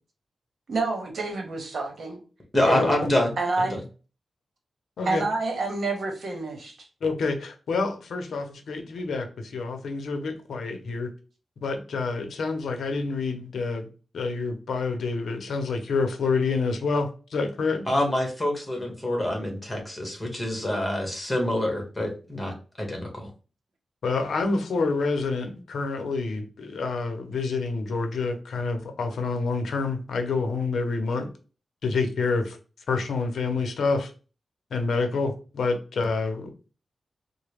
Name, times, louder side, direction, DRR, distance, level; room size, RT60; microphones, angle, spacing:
voice 1, 0.7-2.2 2.6-2.9 3.4-3.8 5.0-6.9, right 3 dB, 60° right, 1.0 m, -28 dB
voice 2, 2.5-3.7 17.9-23.3, left 1 dB, 15° left, 1.3 m, -26 dB
voice 3, 7.0-11.1 11.6-13.9 14.1-17.8 24.0-31.3 31.8-32.6 32.9-34.1 34.7-36.5, left 4 dB, 85° left, 0.7 m, -27 dB
3.9 x 2.1 x 3.4 m
wide cardioid pair, 120°, 0 cm